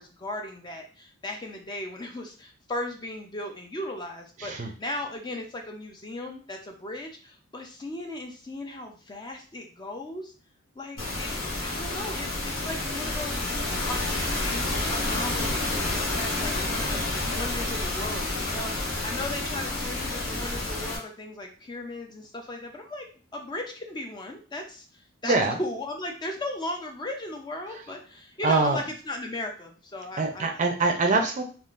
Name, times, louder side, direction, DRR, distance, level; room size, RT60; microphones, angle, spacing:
voice 1, 0.0-10.3 10.8-14.5 14.9-23.1 23.3-30.5 30.8-30.9, left 1 dB, 20° left, 2 dB, 0.4 m, -37 dB
voice 2, 4.4-4.7 25.2-25.6 27.7-27.8 28.4-28.8 30.2-31.4, right 3 dB, 35° right, 3 dB, 0.4 m, -24 dB
sound 1, 11.0-21.0, left 2 dB, 75° left, 1.0 m, -29 dB
3.5 x 2.4 x 2.4 m, 0.39 s
head